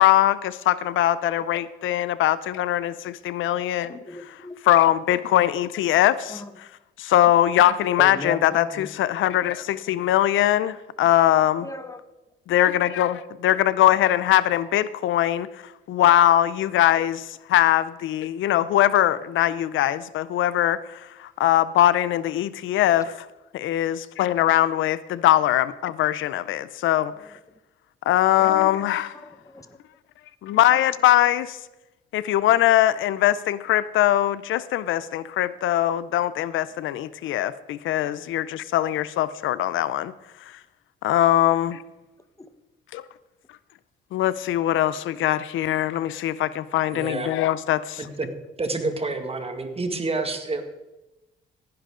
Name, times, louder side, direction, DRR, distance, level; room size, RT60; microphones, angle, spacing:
voice 1, 0.0-4.0 4.3-4.4 4.6-6.4 7.0-11.7 12.5-23.3 23.5-27.1 28.1-29.1 30.4-31.6 32.1-40.1 40.5-40.6 41.0-41.8 42.9-43.0 44.1-48.1, left 13 dB, 80° left, 16 dB, 0.6 m, -21 dB
voice 2, 3.5-4.6 6.3-6.5 8.0-8.9 11.4-12.0 27.2-27.4 28.5-29.8 42.4-42.5, left 2 dB, 15° left, 10 dB, 1.2 m, -37 dB
voice 3, 46.9-47.3 48.0-48.3 48.6-50.6, right 3 dB, 30° right, 6 dB, 2.1 m, -28 dB
16.5 x 10.5 x 3.8 m, 1.0 s
cardioid pair, 90°, 20 cm